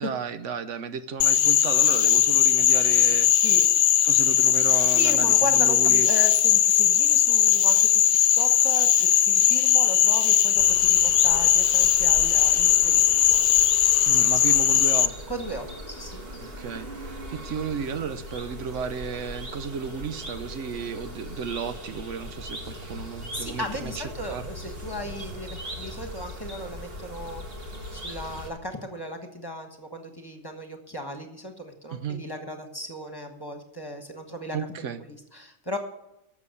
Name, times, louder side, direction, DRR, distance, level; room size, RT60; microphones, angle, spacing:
voice 1, 0.0-3.5 4.0-6.2 14.1-15.1 16.4-24.5 31.9-32.2 34.5-35.0, right 6 dB, 75° right, 11 dB, 1.1 m, -34 dB
Frog, 1.2-15.1, left 10 dB, 75° left, 1.0 m, -19 dB
voice 2, 4.9-8.0 8.3-13.4 15.3-16.2 23.3-27.4 27.9-35.8, equal, 20° left, 4 dB, 1.4 m, -36 dB
sound 1, 10.5-28.5, equal, 50° right, 2.3 m, -39 dB
12.5 x 7.2 x 8.3 m, 0.89 s
omnidirectional pair, 1.3 m